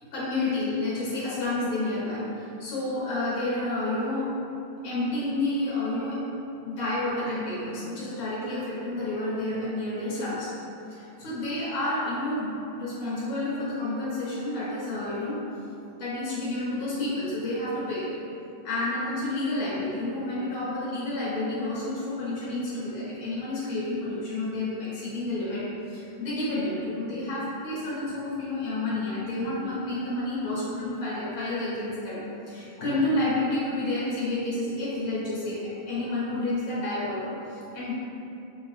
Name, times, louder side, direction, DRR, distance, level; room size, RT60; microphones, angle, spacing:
voice 1, 0.0-4.3 4.8-6.2 6.6-10.5 10.9-15.4 16.0-18.1 18.6-37.9, left 2 dB, 75° left, -8 dB, 1.2 m, -30 dB
3.1 x 2.6 x 3.2 m, 2.8 s
omnidirectional pair, 1.6 m